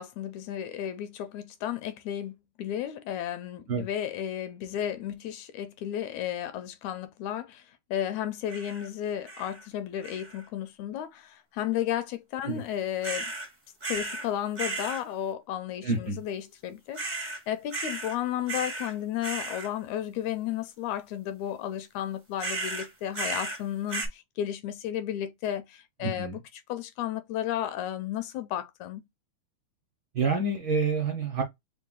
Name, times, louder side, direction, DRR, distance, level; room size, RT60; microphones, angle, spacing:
voice 1, 0.0-13.3 13.9-29.0, left 11 dB, 80° left, 1.8 m, -33 dB
sound 1, 8.5-8.9 9.3-9.7 10.0-10.5 13.0-13.5 13.8-14.3 14.6-15.0 16.9-17.4 17.7-18.2 18.5-18.9 19.2-19.7 22.4-23.6 23.9-24.1, right 2 dB, 35° right, 0.6 m, -34 dB
voice 2, 15.8-16.2 26.2-26.3 30.1-31.4, right 4 dB, 60° right, 1.3 m, -27 dB
4.9 x 2.2 x 3.7 m
omnidirectional pair, 3.5 m